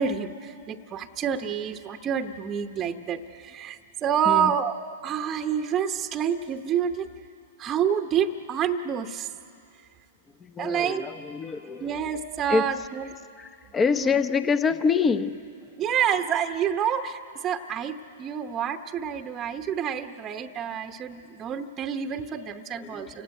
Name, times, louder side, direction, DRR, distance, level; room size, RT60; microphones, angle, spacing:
voice 1, 0.0-4.7 5.0-7.1 7.6-9.3 10.6-11.0 11.8-13.1 14.0-14.1 15.8-23.2, right 8 dB, 25° right, 7 dB, 0.9 m, -28 dB
voice 2, 10.4-12.0 12.5-12.7 13.4-15.4 22.7-23.2, left 5 dB, 20° left, 12 dB, 0.8 m, -26 dB
29.0 x 17.0 x 9.3 m, 2.5 s
figure-of-eight pair, 110°, 0 cm